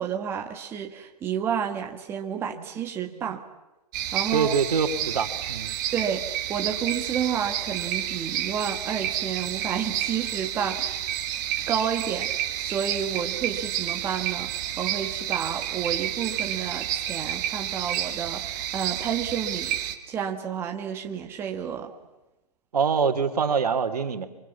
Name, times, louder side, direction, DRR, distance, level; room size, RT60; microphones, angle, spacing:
voice 1, 0.0-3.4 4.1-4.5 5.9-11.0 11.7-12.3 12.6-19.8 20.1-21.9, right 8 dB, 10° right, 3 dB, 1.4 m, -30 dB
sound 1, 3.9-19.9, right 11 dB, 30° right, 2.0 m, -30 dB
voice 2, 4.3-5.7 22.7-24.3, right 6 dB, 70° right, 9 dB, 2.8 m, -24 dB
27.0 x 24.5 x 8.4 m, 0.98 s
hypercardioid pair, 155°, 20 cm